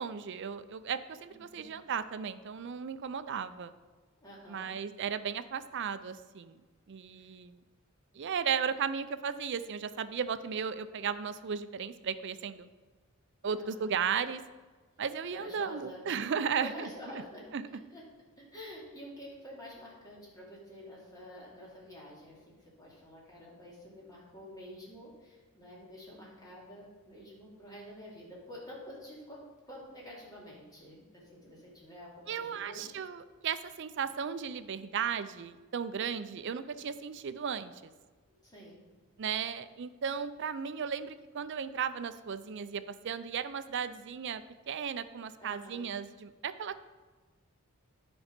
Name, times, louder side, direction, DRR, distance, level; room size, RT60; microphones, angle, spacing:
voice 1, 0.0-3.7 4.5-6.6 6.9-7.6 8.1-12.7 13.4-14.4 15.0-16.9 17.5-17.7 32.3-37.8 39.2-46.8, right 7 dB, 55° right, 13 dB, 0.4 m, -35 dB
voice 2, 1.3-1.7 4.2-4.7 7.2-7.3 13.5-14.0 15.3-16.0 16.6-17.5 17.9-18.0 18.5-32.9 36.0-36.4 38.4-38.8 45.4-45.8, equal, 15° left, -5 dB, 2.5 m, -49 dB
10.0 x 5.3 x 5.1 m, 1.3 s
head